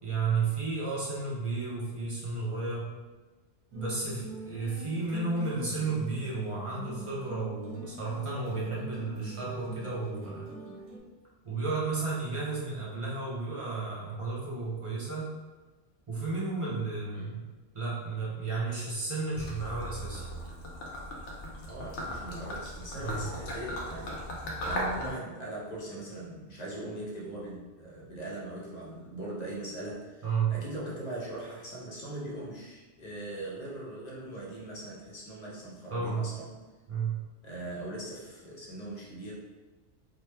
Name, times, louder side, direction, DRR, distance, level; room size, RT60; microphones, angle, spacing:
voice 1, 0.0-2.9 3.7-10.5 11.4-15.3 16.1-17.4 17.7-20.2 23.0-23.2 30.2-30.6 35.9-36.3 36.9-37.2, right 4 dB, 35° right, -6 dB, 0.6 m, -33 dB
sound 1, 3.7-11.0, right 2 dB, 80° right, 1.2 m, -43 dB
Gurgling / Liquid, 19.3-25.1, equal, 90° left, 1.0 m, -37 dB
voice 2, 21.7-36.6 37.4-39.3, right 1 dB, 45° left, -4 dB, 0.6 m, -40 dB
3.0 x 2.0 x 3.2 m, 1.3 s
omnidirectional pair, 1.2 m